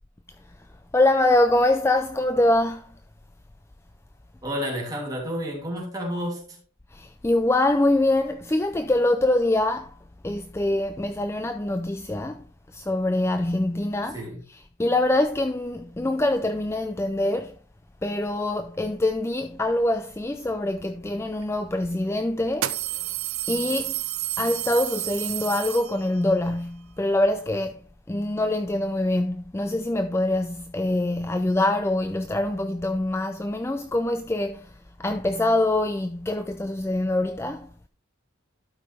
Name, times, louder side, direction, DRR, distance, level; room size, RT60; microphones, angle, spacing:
voice 1, 0.9-2.9 6.9-9.9 10.2-12.4 12.7-17.5 18.0-23.1 23.5-23.9 24.4-27.8 28.1-34.7 35.0-37.7, left 1 dB, 10° left, 0.3 m, -24 dB
voice 2, 4.4-6.6 14.1-14.4, equal, 20° right, 3.0 m, -30 dB
sound 1, 21.4-21.5 22.5-26.3, right 14 dB, 85° right, 0.7 m, -30 dB
12.5 x 5.6 x 3.4 m
head